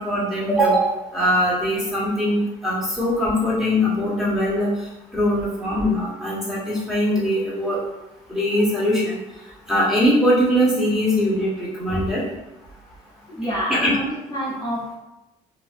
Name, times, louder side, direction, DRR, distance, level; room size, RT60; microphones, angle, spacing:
voice 1, 0.0-7.8 8.3-9.2 9.7-12.2 13.7-13.9, equal, 5° right, -7 dB, 1.1 m, -21 dB
voice 2, 13.3-14.9, equal, 25° left, -6 dB, 0.7 m, -27 dB
2.6 x 2.1 x 3.4 m, 0.95 s
cardioid pair, 105°, 15 cm